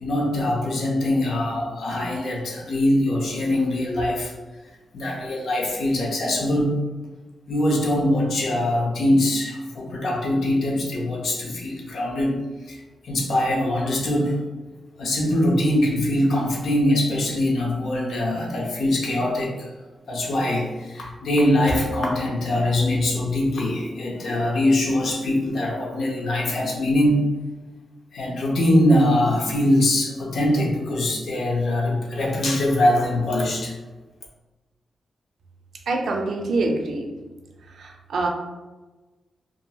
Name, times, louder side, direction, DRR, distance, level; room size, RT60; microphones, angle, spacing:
voice 1, 0.0-4.3 4.9-6.7 7.5-14.4 15.0-19.7 20.1-27.2 28.1-33.7, left 1 dB, 65° left, -2 dB, 0.6 m, -22 dB
voice 2, 35.9-37.1 37.7-38.3, right 2 dB, 70° right, 1 dB, 0.4 m, -25 dB
2.8 x 2.6 x 2.3 m, 1.2 s
wide cardioid pair, 155°, 0 cm